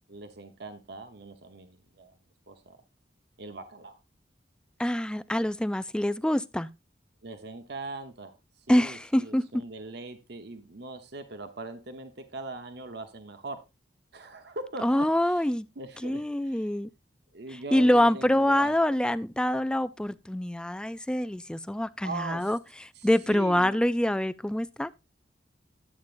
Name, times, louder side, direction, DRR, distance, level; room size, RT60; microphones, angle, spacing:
voice 1, 0.1-2.2 2.5-2.8 3.4-4.0 7.2-13.6 14.1-16.7 17.3-18.7 22.0-22.5 22.9-23.8, right 2 dB, 65° right, 1.1 m, -41 dB
voice 2, 4.8-6.7 8.7-9.4 14.8-15.7 16.0-16.9 17.7-22.6 23.0-24.9, left 1 dB, 5° left, 0.4 m, -25 dB
11.0 x 8.2 x 2.5 m
head